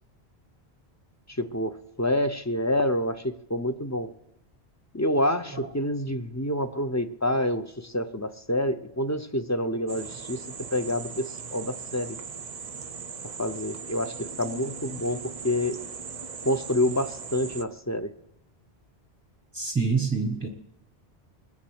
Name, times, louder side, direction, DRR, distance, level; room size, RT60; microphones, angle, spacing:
voice 1, 1.3-4.1 4.9-10.4 10.7-12.2 13.4-15.8 16.4-18.1, left 1 dB, 20° left, 8 dB, 0.5 m, -27 dB
sound 1, 9.9-17.6, right 6 dB, 45° right, 0.6 m, -39 dB
voice 2, 19.5-20.5, right 4 dB, 10° right, 4 dB, 0.9 m, -26 dB
20.5 x 7.2 x 8.0 m, 0.84 s
omnidirectional pair, 1.1 m